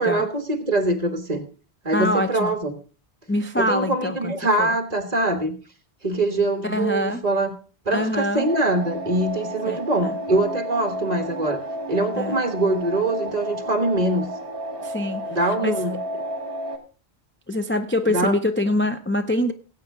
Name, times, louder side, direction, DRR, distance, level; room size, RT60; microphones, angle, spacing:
voice 1, 0.0-1.5 1.8-2.8 3.6-5.6 6.0-7.6 7.8-11.6 11.9-14.3 15.3-16.0 18.1-18.3, right 2 dB, 40° right, 6 dB, 1.7 m, -23 dB
voice 2, 1.9-2.5 3.3-4.3 4.6-4.7 6.6-7.2 7.9-8.5 9.7-10.1 12.2-12.4 14.8-15.3 15.6-15.8 17.5-19.5, left 1 dB, 15° left, 6 dB, 0.5 m, -24 dB
sound 1, 8.4-16.8, right 1 dB, 60° right, 1.8 m, -31 dB
18.5 x 8.3 x 3.7 m, 0.36 s
omnidirectional pair, 1.1 m